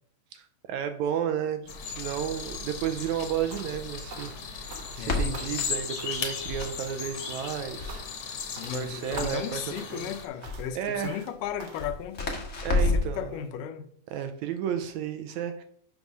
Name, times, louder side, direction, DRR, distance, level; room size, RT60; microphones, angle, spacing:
voice 1, 0.3-8.1 8.7-10.1 10.8-11.2 12.6-13.3 14.1-15.6, right 9 dB, 80° right, 1.7 m, -32 dB
Crackle, 1.6-13.2, left 2 dB, 40° left, 1.2 m, -34 dB
sound 1, 1.7-10.3, left 6 dB, 60° left, 2.1 m, -37 dB
sound 2, 3.5-3.8 4.1-5.1 5.3-5.7 6.0-6.3 6.6-7.0 7.2-7.5 7.9-8.3 8.6-8.8 9.2-9.5 9.8-10.1 10.4-10.7 11.0-11.3 11.6-11.9, right 2 dB, 60° right, 1.1 m, -45 dB
voice 2, 5.0-5.5 8.4-12.5 12.8-13.9, left 9 dB, 80° left, 2.3 m, -36 dB
7.1 x 5.4 x 6.1 m
omnidirectional pair, 3.8 m